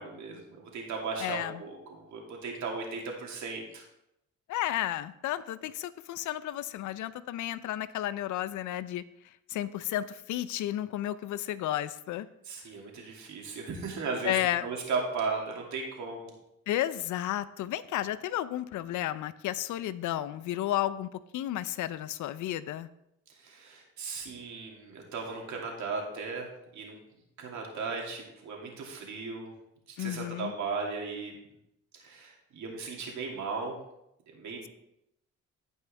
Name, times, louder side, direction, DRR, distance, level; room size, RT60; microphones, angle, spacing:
voice 1, 0.0-3.8 12.4-16.3 23.4-27.0 27.4-29.5 29.9-31.3 31.9-33.8 34.3-34.7, right 4 dB, 70° right, 0 dB, 2.6 m, -36 dB
voice 2, 1.2-1.5 4.5-9.0 9.5-12.3 14.2-14.6 16.7-21.1 21.3-22.9 30.0-30.5, left 13 dB, 80° left, 16 dB, 0.6 m, -32 dB
15.5 x 5.5 x 3.4 m, 0.81 s
cardioid pair, 90°, 30 cm